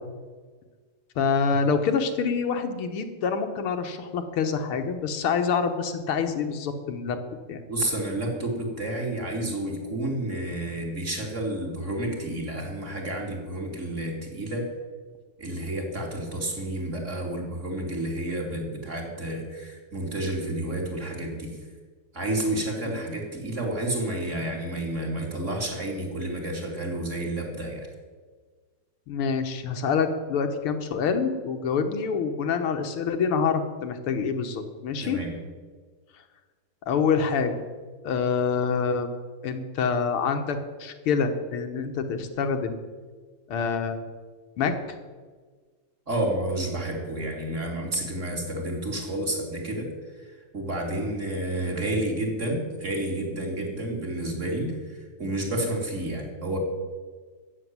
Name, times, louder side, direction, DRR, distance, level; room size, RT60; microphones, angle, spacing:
voice 1, 1.2-7.2 7.5-7.6 22.9-23.0 29.1-35.2 36.8-37.5 38.0-39.1 39.4-42.8 43.5-44.1 44.6-44.8, left 5 dB, 80° left, 6 dB, 2.1 m, -26 dB
voice 2, 7.7-14.7 15.4-21.6 22.1-27.9 35.0-35.4 46.1-49.9 50.2-56.6, right 1 dB, 35° right, 0 dB, 3.0 m, -30 dB
14.5 x 7.2 x 9.5 m, 1.5 s
omnidirectional pair, 2.3 m